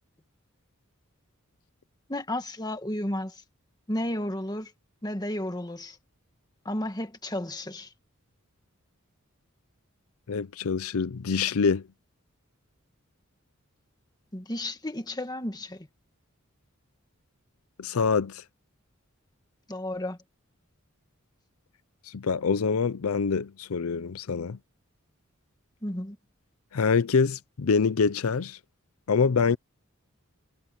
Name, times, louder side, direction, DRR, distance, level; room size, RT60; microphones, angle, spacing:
voice 1, 2.1-3.4 3.9-4.7 5.0-6.0 6.7-7.9 14.3-15.9 19.7-20.2 25.8-26.2, left 1 dB, 20° left, 1.8 m, -32 dB
voice 2, 10.3-11.8 17.8-18.4 22.1-24.6 26.7-28.6 29.1-29.6, left 5 dB, 85° left, 0.6 m, -25 dB
head